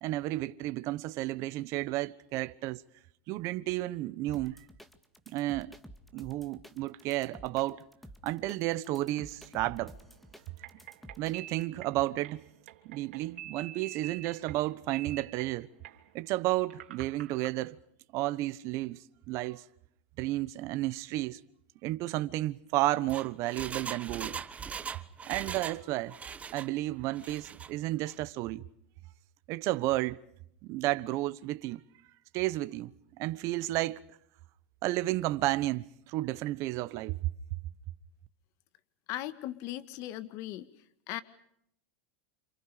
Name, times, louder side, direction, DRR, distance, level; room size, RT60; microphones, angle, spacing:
voice 1, 0.0-2.8 3.3-4.6 5.3-5.7 6.1-7.8 8.2-9.9 11.2-12.4 12.8-15.7 16.1-17.8 18.1-19.6 20.2-21.4 21.8-24.4 25.3-26.2 26.5-28.6 29.5-30.2 30.6-31.8 32.3-32.9 33.2-34.0 34.8-37.3, right 17 dB, 50° right, 1.1 m, -32 dB
sound 1, 4.3-11.6, equal, ahead, 2.1 m, -51 dB
sound 2, 9.3-17.5, right 12 dB, 80° right, 3.0 m, -48 dB
Engine, 22.9-25.8 26.1-26.7 27.1-27.7 28.1-28.2, right 6 dB, 20° right, 1.3 m, -40 dB
voice 2, 39.1-40.7 41.1-41.2, left 14 dB, 55° left, 1.8 m, -38 dB
29.5 x 27.5 x 5.0 m
supercardioid pair, 115°, 6 cm